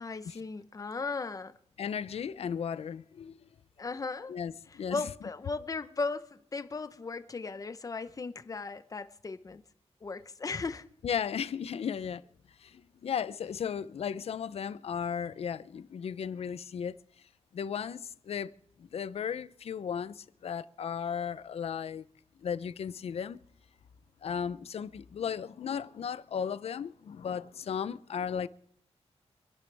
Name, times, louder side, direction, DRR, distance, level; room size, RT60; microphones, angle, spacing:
voice 1, 0.0-1.5 3.8-4.3 4.7-9.6 10.0-10.9, left 4 dB, 30° left, 0.8 m, -37 dB
voice 2, 1.8-3.4 4.3-5.0 11.0-12.2 12.6-17.0 17.5-18.5 18.8-22.0 22.4-23.4 24.2-28.5, left 7 dB, 65° left, 0.6 m, -35 dB
26.5 x 11.5 x 3.4 m
wide cardioid pair, 135°, 11 cm